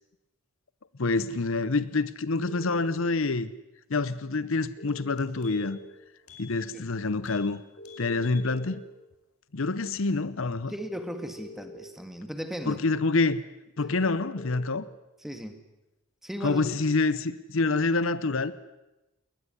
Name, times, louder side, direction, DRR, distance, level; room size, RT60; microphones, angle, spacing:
voice 1, 1.0-3.5 3.9-5.8 6.4-7.6 8.0-8.8 9.5-10.7 12.7-13.4 13.8-14.9 16.4-18.5, left 3 dB, 65° left, 16 dB, 0.8 m, -27 dB
sound 1, 2.5-2.8 4.8-5.8 7.8-8.8 10.8-11.8 13.8-14.7, left 2 dB, 45° left, 4.7 m, -45 dB
sound 2, 4.6-4.7 5.0-5.9 6.2-6.5 6.8-6.9 7.2-7.5 7.8-8.5 8.9-9.0, left 6 dB, 80° left, 5.0 m, -51 dB
voice 2, 10.7-12.8 15.2-15.6 16.2-16.7, equal, ahead, 8 dB, 1.9 m, -36 dB
20.5 x 20.0 x 9.8 m, 0.98 s
head